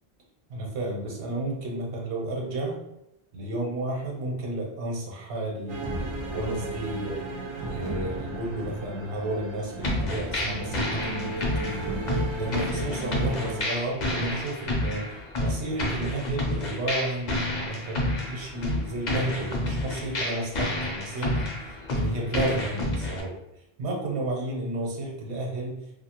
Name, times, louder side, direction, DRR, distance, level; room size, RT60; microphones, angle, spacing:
voice 1, 0.5-2.8 3.3-5.8 6.3-7.2 7.6-11.9 12.4-23.4 23.8-25.8, right 1 dB, 80° right, -2 dB, 1.0 m, -32 dB
sound 1, 5.7-13.6, right 2 dB, 50° right, 0.3 m, -34 dB
sound 2, 9.8-23.2, left 1 dB, 50° left, 0.6 m, -30 dB
2.6 x 2.3 x 2.8 m, 0.88 s
omnidirectional pair, 1.1 m